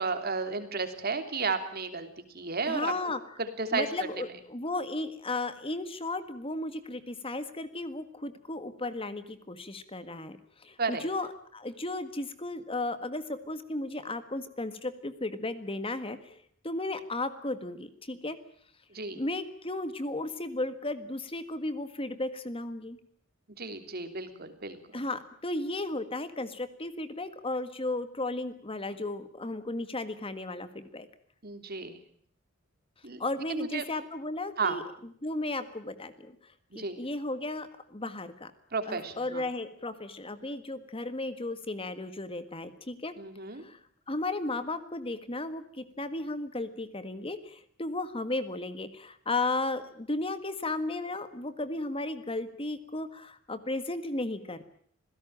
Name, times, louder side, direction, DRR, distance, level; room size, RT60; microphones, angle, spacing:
voice 1, 0.0-2.9 3.4-3.9 10.8-11.0 18.9-19.2 23.6-25.0 31.4-32.0 33.0-33.2 33.5-33.8 34.6-34.8 36.7-37.0 38.7-39.4 43.2-43.6, right 4 dB, 50° right, 8 dB, 3.2 m, -33 dB
voice 2, 2.7-3.2 3.7-18.4 19.1-23.0 24.9-31.1 33.2-34.8 35.2-38.5 38.9-43.1 43.6-43.8 44.1-54.6, left 2 dB, 30° left, 11 dB, 1.7 m, -35 dB
27.0 x 17.0 x 8.8 m, 0.63 s
head